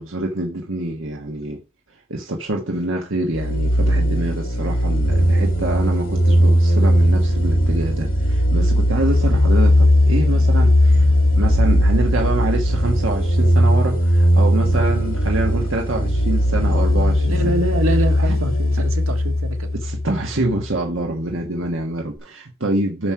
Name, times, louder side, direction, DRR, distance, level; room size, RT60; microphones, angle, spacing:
voice 1, 0.0-1.6 2.1-11.1 11.3-17.4 18.2-18.3 19.8-23.1, right 2 dB, 70° right, 1.4 m, -26 dB
sound 1, 3.3-20.7, equal, 80° left, 3.1 m, -18 dB
voice 2, 17.3-19.8, right 2 dB, 85° right, 1.9 m, -25 dB
9.8 x 6.2 x 4.8 m
head